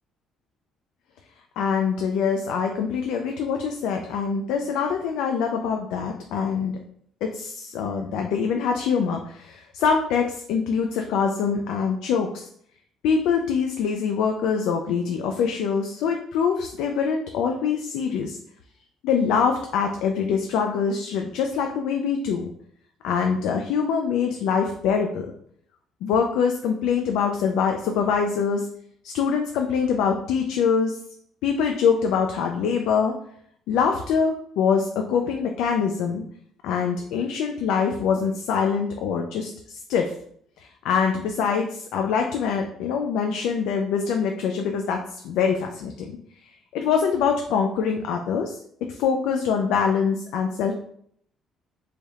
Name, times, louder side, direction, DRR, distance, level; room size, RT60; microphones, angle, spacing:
voice 1, 1.6-6.8 7.2-12.5 13.0-18.4 19.0-22.5 23.0-25.3 26.0-28.7 29.0-31.0 31.4-33.1 33.7-36.2 36.6-40.1 40.6-46.2 46.7-48.6 48.9-50.7, left 6 dB, 90° left, 3 dB, 0.3 m, -24 dB
3.3 x 2.3 x 4.1 m, 0.65 s
cardioid pair, 175°, 0 cm